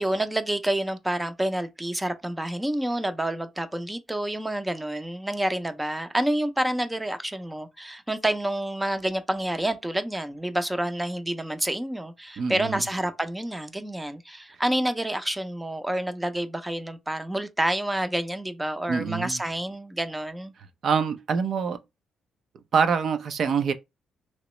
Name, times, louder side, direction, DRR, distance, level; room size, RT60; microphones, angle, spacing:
voice 1, 0.0-20.5, right 1 dB, 10° right, 0.5 m, -28 dB
voice 2, 12.4-12.8 18.9-19.4 20.8-21.8 22.7-23.7, right 6 dB, 60° right, 0.5 m, -25 dB
3.0 x 2.9 x 3.1 m
cardioid pair, 90°, 0 cm